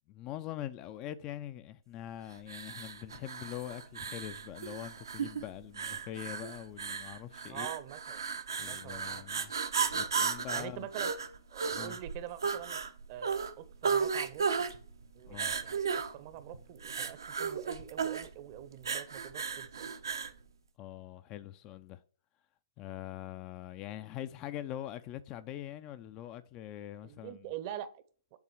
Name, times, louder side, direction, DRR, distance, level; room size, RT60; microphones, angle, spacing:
voice 1, 0.1-7.7 8.6-9.5 9.9-10.9 11.7-12.0 15.3-15.6 20.8-22.0 22.8-27.5, left 12 dB, 30° left, 0.4 m, -43 dB
sound 1, 2.5-20.4, right 6 dB, 75° right, 0.7 m, -35 dB
voice 2, 7.5-8.2 8.6-9.2 10.5-11.2 11.5-12.8 13.1-14.7 15.1-19.9 27.0-28.0, right 11 dB, 35° right, 0.7 m, -45 dB
7.1 x 3.7 x 4.6 m
figure-of-eight pair, 125°, 2 cm